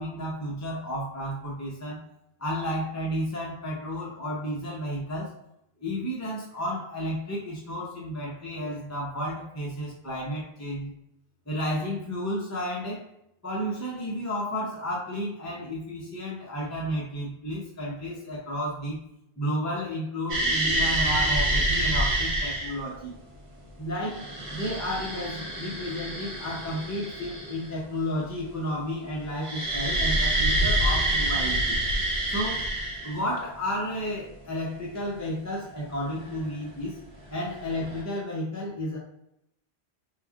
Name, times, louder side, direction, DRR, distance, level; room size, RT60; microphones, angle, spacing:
voice 1, 0.0-2.1 2.4-5.4 5.8-10.9 11.5-13.0 13.4-19.0 19.4-23.1 23.8-31.8 32.3-32.7 33.0-37.0 37.3-39.0, equal, 20° left, -4 dB, 0.6 m, -32 dB
sound 1, 20.3-22.8 23.9-27.8 29.4-33.4 36.4-36.5 37.6-38.0, right 1 dB, 75° right, 1.4 m, -27 dB
3.6 x 3.1 x 2.4 m, 0.80 s
omnidirectional pair, 1.1 m